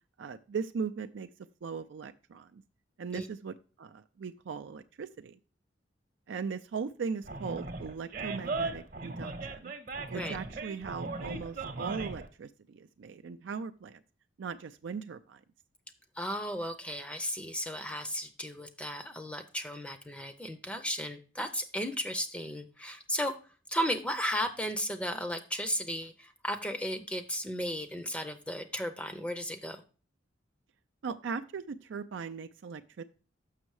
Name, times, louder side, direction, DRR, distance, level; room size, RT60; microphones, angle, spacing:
voice 1, 0.2-1.3 1.6-2.6 3.0-5.4 6.3-9.7 10.1-14.0 14.4-15.4 31.0-33.0, right 5 dB, 70° right, 9 dB, 0.4 m, -39 dB
Animal, 7.2-12.3, right 3 dB, 45° right, 0.9 m, -38 dB
voice 2, 16.2-29.8, equal, 5° left, 8 dB, 0.5 m, -35 dB
6.5 x 6.1 x 4.7 m, 0.36 s
head